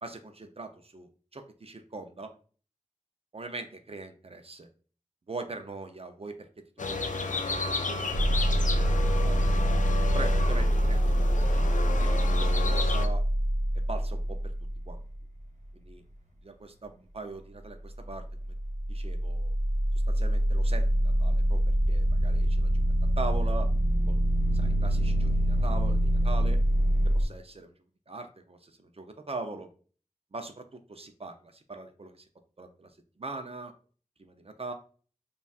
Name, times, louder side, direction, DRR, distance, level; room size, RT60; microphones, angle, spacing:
voice 1, 0.0-2.3 3.3-4.7 5.3-6.5 6.8-7.2 7.5-9.0 9.2-9.5 10.1-13.2 13.9-14.5 14.9-15.0 15.7-16.0 16.4-18.5 18.9-19.5 20.1-21.6 21.9-22.7 23.2-23.7 24.1-24.2 24.5-26.6 27.0-27.7 28.1-29.7 30.3-32.2 32.6-32.9 33.2-33.7 34.2-34.7, right 3 dB, 50° right, 6 dB, 0.5 m, -41 dB
sound 1, 6.8-13.1, left 4 dB, 85° left, 0.4 m, -32 dB
sound 2, 8.1-15.4 17.9-27.2, right 1 dB, 65° right, 1.1 m, -25 dB
5.3 x 2.3 x 2.3 m, 0.40 s
wide cardioid pair, 40°, 13 cm